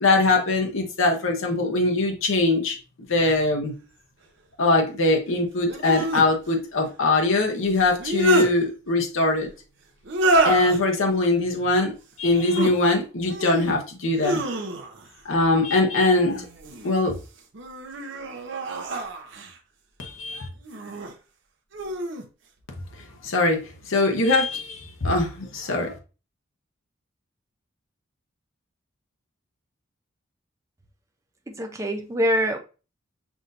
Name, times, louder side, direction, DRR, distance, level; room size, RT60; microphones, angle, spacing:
voice 1, 0.0-2.8 3.1-3.7 4.6-9.5 10.4-11.9 12.2-14.4 15.2-16.4 16.8-17.2 20.0-20.5 23.2-26.0, left 2 dB, 75° left, 0.8 m, -22 dB
sound 1, 3.3-3.4 5.7-6.3 7.8-8.5 10.0-10.8 12.3-12.7 13.2-13.8 14.2-15.1 16.3-16.9 17.5-19.6 20.6-21.1 21.7-22.2, right 2 dB, 60° right, 0.7 m, -27 dB
voice 2, 31.5-32.6, equal, 15° right, 0.4 m, -24 dB
5.9 x 2.7 x 2.5 m
head